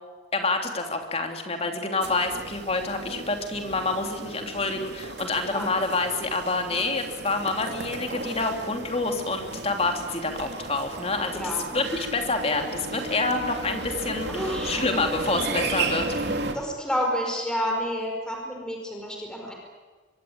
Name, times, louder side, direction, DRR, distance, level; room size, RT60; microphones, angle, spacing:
voice 1, 0.3-16.3, left 3 dB, 30° left, 4 dB, 3.0 m, -27 dB
sound 1, 2.0-16.5, right 3 dB, 60° right, 3.0 m, -34 dB
voice 2, 11.3-11.6 14.3-15.1 16.5-19.5, equal, 5° left, 0 dB, 4.9 m, -30 dB
24.5 x 23.0 x 8.8 m, 1.4 s
head